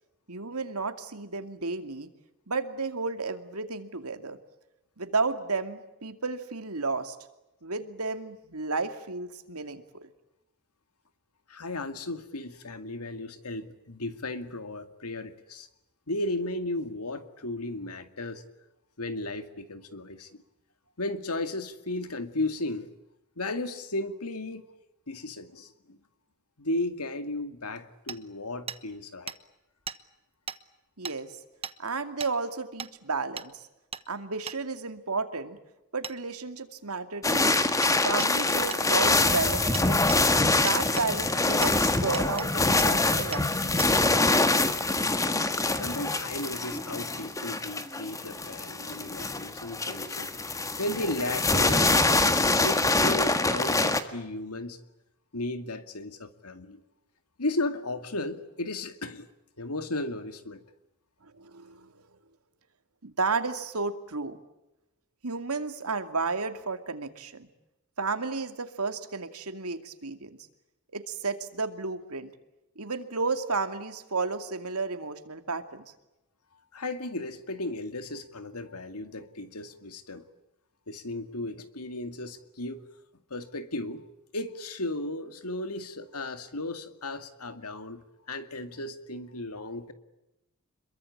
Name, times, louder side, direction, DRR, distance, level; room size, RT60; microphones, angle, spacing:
voice 1, 0.3-2.1 2.5-4.4 5.0-7.2 7.6-10.1 31.0-31.3 31.8-33.7 34.1-35.6 35.9-37.5 38.0-40.1 40.6-44.1 61.2-62.0 63.0-64.4 65.2-67.5 68.0-70.4 70.9-72.3 72.8-75.9, right 4 dB, 80° right, 8 dB, 2.5 m, -32 dB
voice 2, 11.5-15.7 16.1-18.4 19.0-20.3 21.0-22.9 23.4-24.7 25.1-26.0 26.6-29.3 45.7-50.3 50.8-52.2 52.6-54.8 55.3-56.8 57.4-59.3 59.6-60.6 76.7-80.2 80.9-82.8 83.3-84.0 84.3-89.9, left 2 dB, 85° left, 10 dB, 2.3 m, -35 dB
Hammer, 28.1-28.2 28.7-28.8 29.3-29.4 29.9-30.0 30.5-30.6 31.0-31.2 31.6-31.8 32.2-32.3 32.8-32.9 33.4-33.5 33.9-34.0 34.5-34.6 36.0-36.2 37.8-37.9 38.2-38.3 38.7-38.8 39.2-39.3 39.7-40.2 40.7-41.1 41.6-41.7 42.1-42.5 42.8-42.9 43.3-43.4 43.8-43.9, right 6 dB, 25° right, 1.0 m, -37 dB
sound 1, 37.2-54.0, left 2 dB, 15° left, 1.7 m, -25 dB
27.0 x 22.5 x 8.7 m, 0.95 s
head